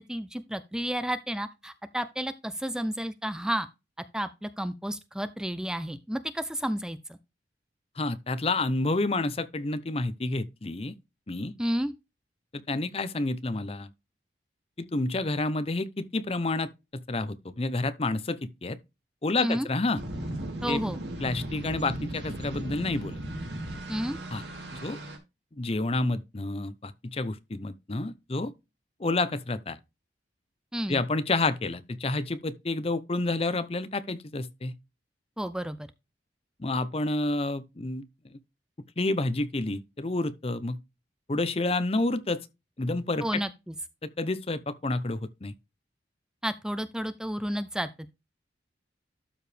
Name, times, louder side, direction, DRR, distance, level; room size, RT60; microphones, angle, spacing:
voice 1, 0.0-3.7 4.1-7.2 11.6-11.9 19.4-19.7 20.6-21.0 23.9-24.2 30.7-31.0 35.4-35.8 43.2-43.7 46.4-48.1, equal, 5° right, 0.5 m, -31 dB
voice 2, 8.0-10.9 11.3-11.5 12.7-13.9 14.8-18.8 19.2-20.0 20.6-20.8 21.2-23.2 24.3-24.4 24.8-25.0 25.6-28.5 29.0-29.8 30.9-34.7 36.6-38.0 38.3-38.4 39.0-40.8 41.3-42.4 42.8-43.4 44.0-45.5, left 2 dB, 35° left, 0.7 m, -29 dB
sound 1, 20.0-25.2, right 1 dB, 75° right, 2.9 m, -36 dB
12.5 x 4.9 x 3.3 m
head